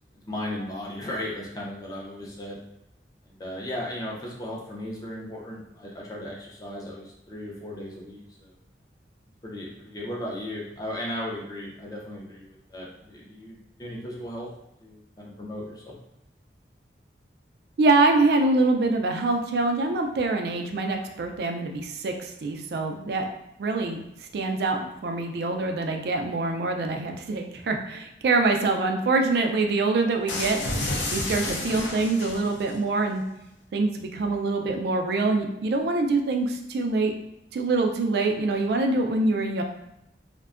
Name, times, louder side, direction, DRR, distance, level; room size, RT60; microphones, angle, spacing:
voice 1, 0.3-2.6 3.3-8.5 9.4-14.5 14.8-16.0, left 1 dB, 20° left, -4 dB, 0.4 m, -36 dB
voice 2, 17.8-23.2 23.6-24.0 24.3-30.6 31.1-33.2 33.7-37.1 37.5-39.6, right 3 dB, 60° right, 4 dB, 0.3 m, -24 dB
sound 1, 30.3-32.7, left 2 dB, 85° left, 0.5 m, -30 dB
2.5 x 2.1 x 2.4 m, 0.84 s
head